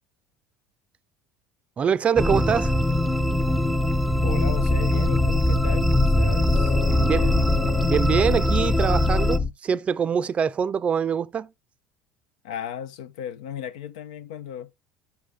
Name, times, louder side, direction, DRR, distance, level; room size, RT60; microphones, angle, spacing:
voice 1, 1.8-2.7 7.0-7.3 7.9-11.5, right 7 dB, 35° right, 0.4 m, -24 dB
sound 1, 2.2-9.4, equal, ahead, 0.7 m, -23 dB
voice 2, 4.2-7.4 12.4-14.7, left 8 dB, 75° left, 0.7 m, -36 dB
sound 2, 4.2-9.5, left 4 dB, 30° left, 1.0 m, -25 dB
7.1 x 4.8 x 3.3 m
hypercardioid pair, 70°, 4 cm